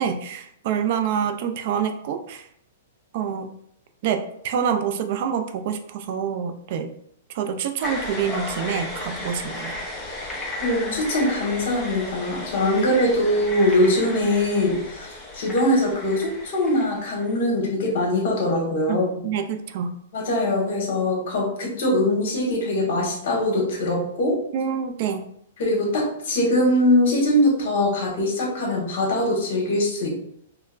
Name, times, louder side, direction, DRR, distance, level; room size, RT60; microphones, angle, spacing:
voice 1, 0.0-2.5 3.1-3.5 4.0-6.9 7.3-9.7 12.7-12.9 18.9-20.0 24.5-25.3, right 7 dB, 50° right, 7 dB, 0.3 m, -26 dB
sound 1, 7.8-17.4, left 2 dB, 10° left, 0.6 m, -34 dB
voice 2, 10.6-19.1 20.1-24.3 25.6-30.1, left 1 dB, 60° left, -1 dB, 1.3 m, -22 dB
4.3 x 2.0 x 2.4 m, 0.70 s
hypercardioid pair, 150°, 0 cm